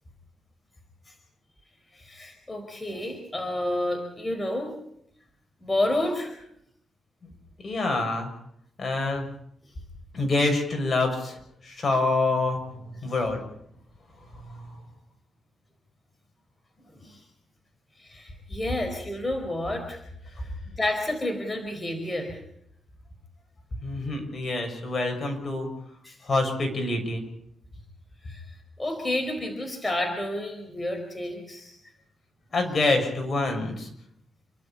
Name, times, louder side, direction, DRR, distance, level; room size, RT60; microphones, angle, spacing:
voice 1, 1.9-4.7 5.6-6.3 13.0-13.1 17.0-17.2 18.0-20.0 20.7-22.4 26.0-26.2 28.3-28.4 28.8-31.8, left 1 dB, 20° left, 3 dB, 4.7 m, -30 dB
voice 2, 7.6-8.3 8.8-9.3 10.1-13.4 14.3-14.7 20.4-20.5 23.8-25.7 26.2-27.2 32.5-33.9, left 2 dB, 40° left, 3 dB, 6.6 m, -26 dB
29.5 x 12.5 x 8.8 m, 0.73 s
cardioid pair, 100°, 0 cm